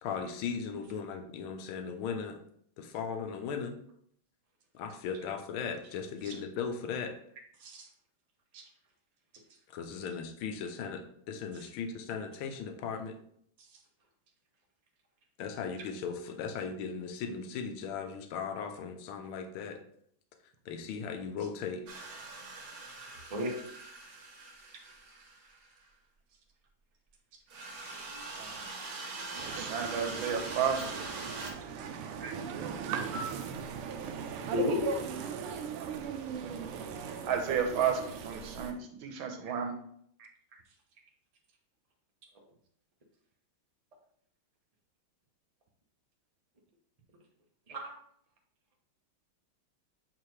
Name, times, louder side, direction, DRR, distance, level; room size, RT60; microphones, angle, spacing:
voice 1, 0.0-2.4 2.8-3.7 4.7-7.1 9.7-13.2 15.4-19.8 20.7-21.8, left 6 dB, 75° left, 6 dB, 1.5 m, -37 dB
sound 1, 21.9-25.7 27.5-31.5, right 3 dB, 55° right, 1.4 m, -43 dB
voice 2, 29.4-31.1 37.2-39.7, right 7 dB, 70° right, 4 dB, 1.6 m, -32 dB
sound 2, 29.4-38.7, right 6 dB, 90° right, 1.6 m, -38 dB
voice 3, 34.5-34.9 39.4-39.5 40.2-40.3 47.7-48.0, left 2 dB, 40° right, 0 dB, 0.5 m, -34 dB
7.5 x 4.3 x 3.2 m, 0.66 s
omnidirectional pair, 2.3 m